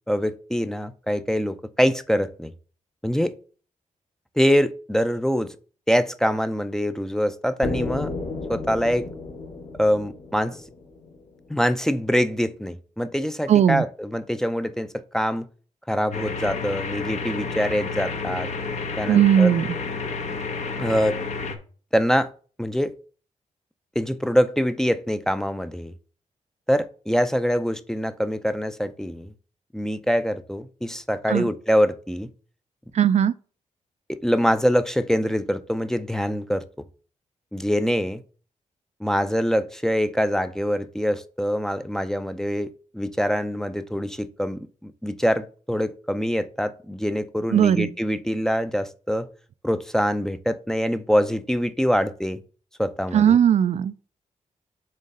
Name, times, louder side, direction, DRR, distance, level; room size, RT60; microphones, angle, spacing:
voice 1, 0.1-2.5 3.0-3.3 4.4-5.5 5.9-8.1 8.5-9.1 9.8-10.6 11.5-15.5 15.9-18.5 19.0-19.5 20.8-21.2 21.9-22.3 22.6-22.9 24.0-25.9 26.7-29.3 29.7-32.3 34.1-36.6 37.5-38.2 39.0-42.7 42.9-49.3 49.6-52.4 52.8-53.4, equal, 5° left, 0.5 m, -24 dB
sound 1, 7.6-11.5, left 3 dB, 90° left, 3.1 m, -33 dB
voice 2, 13.5-13.8 19.1-19.7 31.3-31.5 32.9-33.3 47.5-47.9 53.1-53.9, right 9 dB, 60° right, 0.4 m, -18 dB
sound 2, 16.1-21.6, left 4 dB, 65° left, 1.0 m, -30 dB
7.5 x 3.1 x 5.4 m
wide cardioid pair, 140°, 13 cm